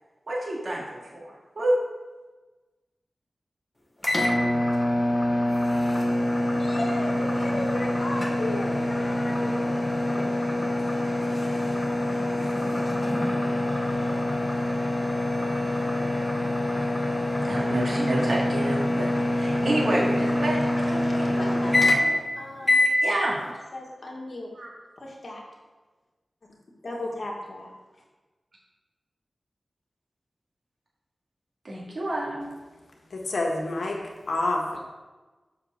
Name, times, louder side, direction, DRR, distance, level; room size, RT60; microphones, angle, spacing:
voice 1, 0.3-0.8 1.1-1.2 1.6-1.8 17.4-21.5 22.5-22.7 23.0-23.4 24.6-24.7 31.6-32.5, right 1 dB, 55° right, -5 dB, 2.1 m, -28 dB
sound 1, 4.0-22.3 22.6-23.0, left 1 dB, 20° left, 1.2 m, -25 dB
voice 2, 6.6-9.5 20.8-22.8 23.2-23.4 23.7-24.5 25.0-25.4 26.8-27.7, left 1 dB, 55° left, -2 dB, 2.1 m, -36 dB
voice 3, 33.1-34.8, left 2 dB, 80° left, 0 dB, 1.4 m, -28 dB
6.4 x 5.6 x 7.0 m, 1.2 s
wide cardioid pair, 95°, 0 cm